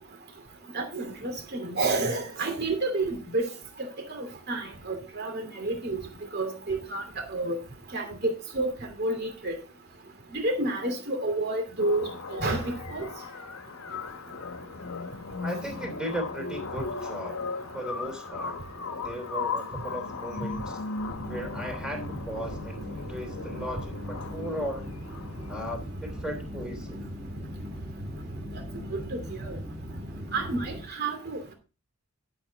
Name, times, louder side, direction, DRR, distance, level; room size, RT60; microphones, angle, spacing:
voice 1, 0.7-3.5 4.1-6.0 6.3-7.0 7.3-7.6 7.9-8.7 9.0-9.5 10.3-13.1 28.9-29.0 29.5-29.6 30.3-31.4, right 2 dB, 45° right, 3 dB, 2.7 m, -29 dB
sound 1, 11.8-25.8, left 4 dB, 70° left, 1.1 m, -37 dB
voice 2, 15.4-17.4 17.7-18.5 19.0-20.8 21.3-24.9 25.5-27.0, equal, 5° right, 3 dB, 3.1 m, -36 dB
sound 2, 21.1-30.8, equal, 20° right, 1.7 m, -39 dB
12.0 x 7.8 x 4.0 m, 0.31 s
head